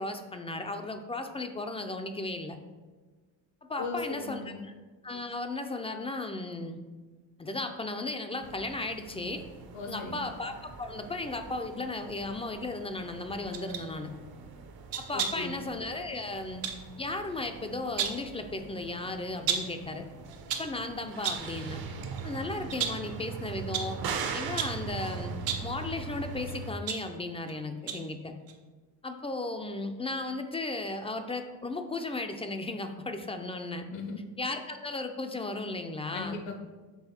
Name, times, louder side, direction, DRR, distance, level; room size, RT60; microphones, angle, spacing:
voice 1, 0.0-2.6 3.7-4.7 5.0-6.8 7.4-9.5 9.9-14.1 15.0-16.6 17.0-20.0 20.6-21.8 22.2-24.0 24.3-25.3 25.6-28.3 29.0-33.8 34.4-36.4, left 2 dB, 15° left, 6 dB, 0.4 m, -35 dB
voice 2, 3.8-4.6 9.7-10.2 15.1-15.6 33.9-34.2 36.1-36.6, left 4 dB, 75° left, 4 dB, 1.3 m, -38 dB
sound 1, 8.4-26.7, right 5 dB, 50° right, 0.7 m, -41 dB
sound 2, 13.5-13.9 14.9-15.5 16.6-16.8 17.7-18.3 19.5-19.8 20.3-20.8 21.2-21.5 22.0-22.2 22.7-23.1 23.7-24.0 24.6-24.9 25.4-25.7 26.5-27.5 27.9-28.1 28.5-28.6, right 7 dB, 80° right, 0.9 m, -33 dB
7.0 x 3.6 x 4.3 m, 1.3 s
cardioid pair, 100°, 45 cm